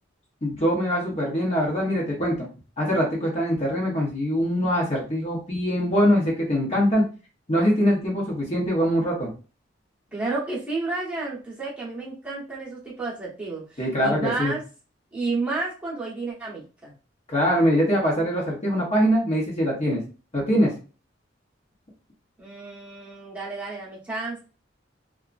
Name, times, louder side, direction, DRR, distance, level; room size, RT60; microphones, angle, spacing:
voice 1, 0.4-2.5 2.8-7.0 7.5-9.3 13.8-14.5 17.3-20.0 20.3-20.7, equal, 35° left, -3 dB, 0.9 m, -23 dB
voice 2, 10.1-14.6 15.1-16.9 22.4-24.4, right 3 dB, 10° right, -7 dB, 1.0 m, -31 dB
2.8 x 2.3 x 2.4 m, 0.35 s
head